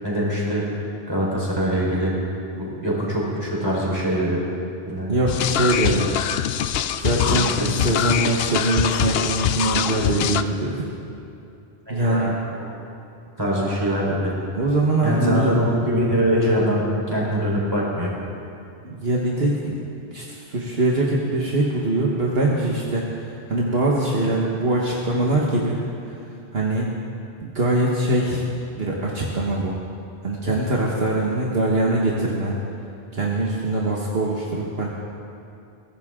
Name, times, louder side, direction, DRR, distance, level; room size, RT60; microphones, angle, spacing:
voice 1, 0.0-0.6 1.1-2.1 2.5-4.4 4.9-5.1 7.3-7.7 11.9-12.3 12.6-12.7 13.4-14.3 15.0-16.8 17.1-18.1, equal, 20° right, -5 dB, 4.3 m, -23 dB
voice 2, 5.1-6.1 7.0-7.5 7.8-10.8 11.9-12.3 14.5-15.6 18.8-19.8 20.1-25.8 26.1-26.2 26.5-26.9 27.5-28.5 28.8-29.8 30.2-32.6 33.1-34.9, right 2 dB, 65° right, -3 dB, 1.6 m, -22 dB
sound 1, 5.3-10.4, left 9 dB, 65° left, 0.8 m, -23 dB
22.5 x 16.0 x 3.7 m, 2.6 s
omnidirectional pair, 1.1 m